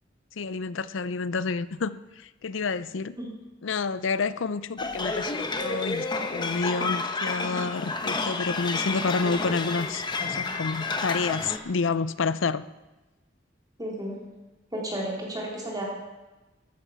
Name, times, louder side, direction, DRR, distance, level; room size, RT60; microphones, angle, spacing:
voice 1, 0.4-3.2 3.6-12.6, left 4 dB, 80° left, 16 dB, 0.6 m, -29 dB
sound 1, 4.8-11.6, left 3 dB, 25° left, 1.1 m, -30 dB
voice 2, 13.8-14.2 14.7-15.8, right 1 dB, 20° right, -2 dB, 3.1 m, -32 dB
14.0 x 13.5 x 6.1 m, 1.1 s
head